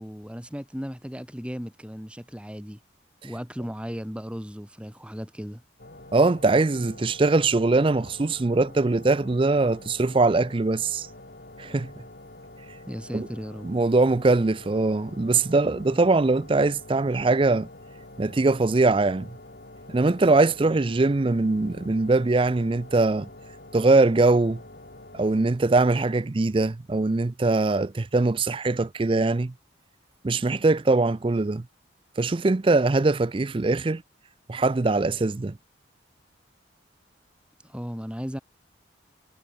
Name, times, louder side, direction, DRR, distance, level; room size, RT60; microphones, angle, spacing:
voice 1, 0.0-2.8 3.2-5.6 12.9-13.7 37.6-38.4, equal, 5° right, 2.6 m, -36 dB
sound 1, 5.8-25.5, left 2 dB, 55° left, 2.5 m, -46 dB
voice 2, 6.1-11.1 11.6-11.9 13.1-13.3 13.6-17.7 18.2-19.3 19.9-23.3 23.7-24.6 25.1-29.5 30.2-31.7 32.2-34.0 34.5-35.6, right 3 dB, 25° right, 0.4 m, -22 dB
head